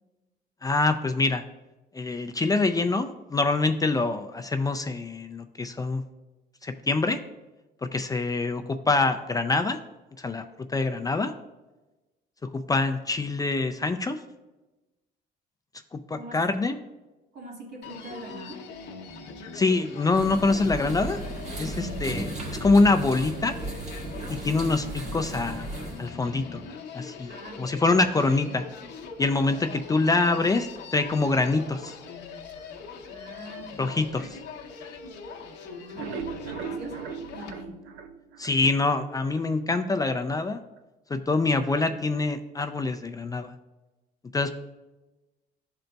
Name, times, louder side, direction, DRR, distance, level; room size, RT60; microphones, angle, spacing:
voice 1, 0.6-1.4 1.9-6.0 6.6-7.2 7.8-9.8 10.2-10.4 10.7-11.3 12.4-14.2 15.9-16.8 19.5-21.2 21.6-22.3 22.6-23.6 24.3-25.7 26.0-26.6 26.9-27.3 27.6-28.6 29.2-32.0 33.8-34.2 38.4-40.6 41.1-43.5 44.3-44.5, left 3 dB, 20° left, 7 dB, 0.3 m, -25 dB
voice 2, 16.1-16.4 17.3-18.7 21.7-22.1 24.2-24.5 27.3-27.8 29.5-29.7 33.0-34.3 35.6-37.9, right 1 dB, 70° right, -4 dB, 1.9 m, -44 dB
Human voice, 17.8-37.6, left 5 dB, 70° left, 0.8 m, -42 dB
sound 1, 20.1-26.1, right 2 dB, 40° right, 1.5 m, -35 dB
sound 2, 35.8-39.0 39.4-39.5 39.8-39.9 40.3-40.4, right 6 dB, 90° right, 0.5 m, -38 dB
11.0 x 3.9 x 2.3 m, 1.1 s
cardioid pair, 95°, 18 cm